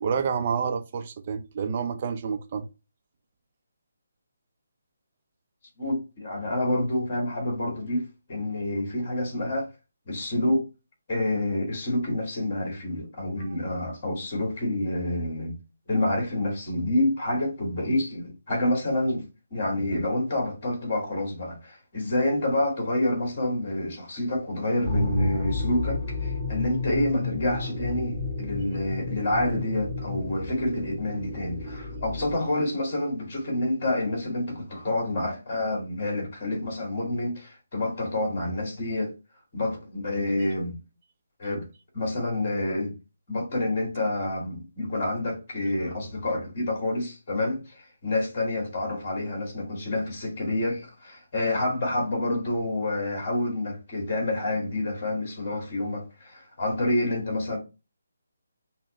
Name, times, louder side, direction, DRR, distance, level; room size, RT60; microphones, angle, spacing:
voice 1, 0.0-2.7 45.8-45.9, right 6 dB, 40° right, 0.6 m, -29 dB
voice 2, 5.8-9.7 10.1-10.6 11.1-15.6 15.9-19.3 19.5-39.1 39.5-40.8 41.4-41.7 41.9-42.9 43.3-57.6, left 1 dB, 40° left, 2.1 m, -28 dB
sound 1, 24.8-32.4, left 2 dB, ahead, 1.2 m, -31 dB
5.5 x 2.2 x 3.0 m
figure-of-eight pair, 145°, 0 cm